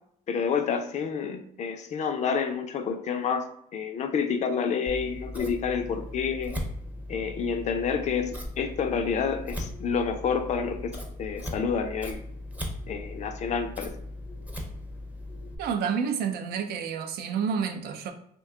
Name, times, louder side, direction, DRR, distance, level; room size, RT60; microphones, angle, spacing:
voice 1, 0.3-3.5 3.7-6.6 7.1-12.2 12.9-13.9, left 6 dB, 45° left, 0.4 m, -29 dB
Scissors, 4.9-15.5, left 1 dB, 10° right, 0.6 m, -38 dB
voice 2, 15.6-18.1, right 6 dB, 70° right, 0.5 m, -29 dB
2.7 x 2.3 x 3.6 m
cardioid pair, 110°, 17 cm